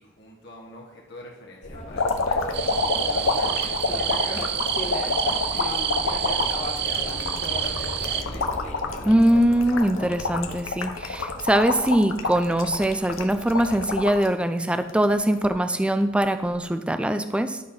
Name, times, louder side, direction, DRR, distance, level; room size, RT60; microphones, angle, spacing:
voice 1, 0.0-2.5 3.1-8.7, left 1 dB, 55° left, -2 dB, 1.3 m, -45 dB
sound 1, 1.6-10.5, left 1 dB, 40° left, 1.3 m, -36 dB
sound 2, 1.9-14.3 14.7-15.5 16.5-16.6, left 3 dB, 85° left, 0.9 m, -28 dB
sound 3, 2.5-8.2, right 9 dB, 55° right, 0.5 m, -28 dB
voice 2, 9.0-17.6, right 1 dB, 5° right, 9 dB, 0.3 m, -22 dB
11.5 x 4.2 x 5.6 m, 1.2 s
head